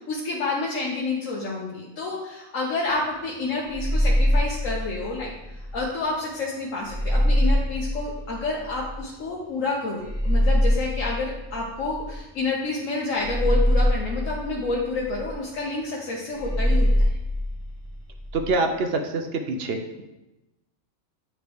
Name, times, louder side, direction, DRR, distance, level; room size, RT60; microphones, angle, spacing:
voice 1, 0.0-5.3 5.7-16.9, left 3 dB, 70° left, -3 dB, 1.2 m, -29 dB
sound 1, 3.7-5.8 6.8-9.0 10.0-12.3 13.2-15.3 16.3-18.5, equal, 10° left, 1.0 m, -23 dB
voice 2, 18.3-20.0, right 3 dB, 60° right, 5 dB, 0.7 m, -26 dB
8.8 x 3.2 x 3.4 m, 0.99 s
omnidirectional pair, 1.4 m